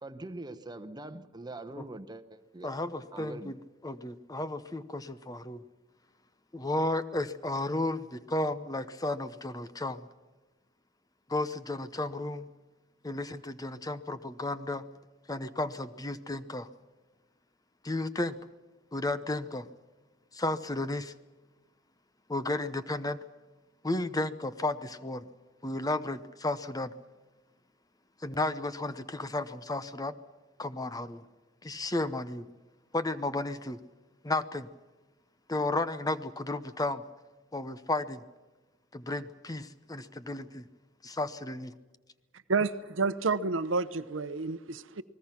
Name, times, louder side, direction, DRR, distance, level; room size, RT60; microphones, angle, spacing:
voice 1, 0.0-2.7 3.1-3.6, right 2 dB, 20° right, 10 dB, 1.1 m, -43 dB
voice 2, 2.6-5.6 6.5-10.0 11.3-12.5 13.0-14.8 15.3-16.7 17.8-18.4 18.9-19.7 20.3-21.1 22.3-23.2 23.8-25.3 25.6-26.9 28.2-30.1 30.6-31.2 31.6-32.5 32.9-33.8 34.2-34.7 35.5-37.0 37.5-38.2 38.9-40.7 41.0-41.7, left 2 dB, 20° left, 12 dB, 0.8 m, -33 dB
voice 3, 42.5-45.0, right 4 dB, 75° right, 13 dB, 0.9 m, -30 dB
29.0 x 20.0 x 6.0 m, 1.2 s
head